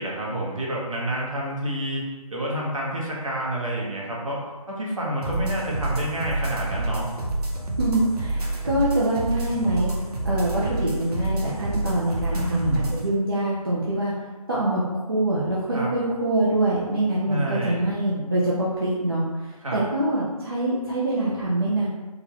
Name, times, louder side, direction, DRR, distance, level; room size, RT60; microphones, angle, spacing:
voice 1, 0.0-2.0 2.3-4.4 4.7-7.1 12.3-13.0 15.7-15.9 17.3-17.8 19.6-19.8, right 1 dB, 60° right, -4 dB, 1.0 m, -28 dB
sound 1, 5.2-13.0, right 1 dB, 85° right, 0.9 m, -28 dB
voice 2, 7.8-9.9 10.2-14.1 14.5-14.8 15.1-21.9, right 1 dB, 40° right, -8 dB, 0.5 m, -24 dB
3.7 x 2.3 x 2.9 m, 1.2 s
figure-of-eight pair, 175°, 19 cm